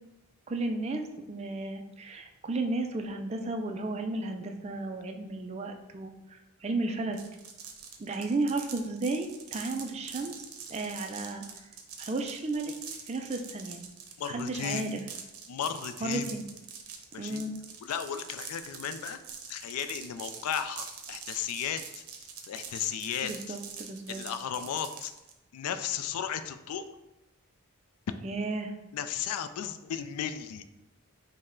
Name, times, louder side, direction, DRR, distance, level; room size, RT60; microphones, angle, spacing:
voice 1, 0.5-7.2 8.0-11.7 12.0-12.7 13.1-13.8 14.3-15.0 16.0-16.4 17.2-17.5 23.2-24.2 28.2-28.7, right 2 dB, 30° right, 5 dB, 0.3 m, -34 dB
sound 1, 7.1-25.3, right 6 dB, 80° right, 0.6 m, -44 dB
voice 2, 14.2-14.9 15.5-16.4 17.1-17.4 17.8-19.2 19.5-22.0 22.5-23.6 24.1-25.1 25.5-26.9 28.9-30.6, left 8 dB, 85° left, 11 dB, 0.3 m, -35 dB
5.3 x 2.1 x 3.6 m, 1.0 s
head